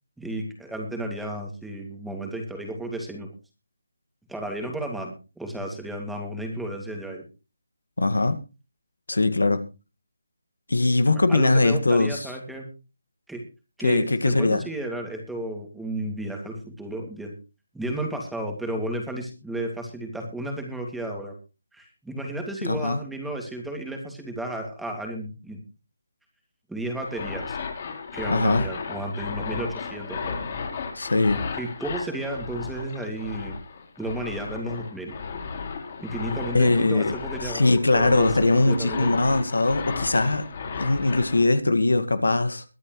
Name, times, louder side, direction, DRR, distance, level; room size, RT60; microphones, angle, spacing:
voice 1, 0.2-3.3 4.3-7.2 11.1-12.7 13.3-13.4 13.8-17.3 17.7-21.4 21.7-25.6 26.7-27.6 28.1-30.4 31.5-33.5 34.0-35.1 36.0-39.1, right 1 dB, ahead, 2.3 m, -33 dB
voice 2, 8.0-8.4 9.1-9.7 10.7-12.3 13.8-14.6 22.6-23.0 28.3-28.7 31.0-31.5 36.5-37.2 37.4-40.5 40.8-42.6, left 2 dB, 90° left, 1.8 m, -21 dB
sound 1, 27.0-41.4, left 5 dB, 40° left, 4.4 m, -34 dB
22.5 x 9.7 x 3.1 m
figure-of-eight pair, 160°, 0 cm